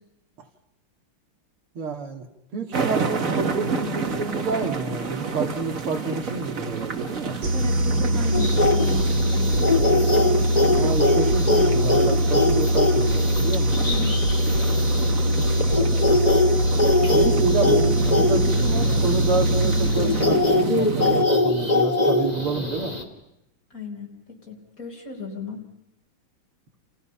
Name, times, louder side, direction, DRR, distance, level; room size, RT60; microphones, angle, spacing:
voice 1, 1.7-2.3 2.5-7.3 10.8-13.8 17.1-22.9, right 3 dB, 85° right, 3 dB, 3.3 m, -29 dB
sound 1, 2.7-21.2, right 5 dB, 40° right, 2.0 m, -30 dB
sound 2, 7.4-20.6, equal, 70° right, 2.9 m, -22 dB
voice 2, 7.5-9.5 13.7-14.4 15.2-15.5 23.7-25.7, left 3 dB, 40° left, 1 dB, 5.1 m, -35 dB
sound 3, 8.3-23.0, left 2 dB, 20° left, 2.6 m, -23 dB
30.0 x 29.0 x 5.8 m, 0.87 s
omnidirectional pair, 2.3 m